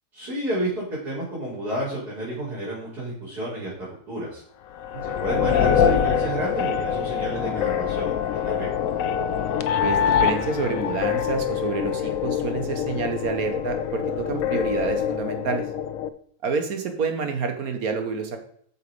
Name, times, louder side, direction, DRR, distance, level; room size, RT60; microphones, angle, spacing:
voice 1, 0.1-3.7 4.1-4.4 5.0-8.7, right 1 dB, 85° right, -10 dB, 4.1 m, -30 dB
sound 1, 4.8-16.1, left 8 dB, 65° left, 0.9 m, -25 dB
voice 2, 9.8-15.6 16.4-18.4, right 5 dB, 70° right, 6 dB, 1.7 m, -28 dB
8.2 x 6.5 x 4.9 m, 0.62 s
omnidirectional pair, 1.6 m